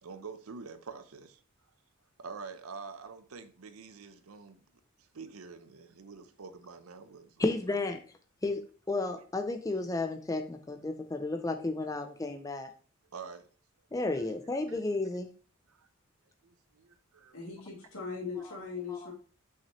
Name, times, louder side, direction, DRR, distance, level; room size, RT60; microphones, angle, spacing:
voice 1, 0.0-1.4 2.2-4.6 5.0-7.8 13.1-13.5 14.7-14.8 15.7-15.9 16.4-17.4, right 5 dB, 90° right, 0.7 m, -46 dB
voice 2, 7.4-8.0 8.4-8.6 8.9-12.7 13.9-15.3 18.4-18.5 18.9-19.1, left 2 dB, 15° left, 0.4 m, -32 dB
voice 3, 17.3-19.1, left 5 dB, 80° left, 2.8 m, -39 dB
5.8 x 5.7 x 3.0 m
head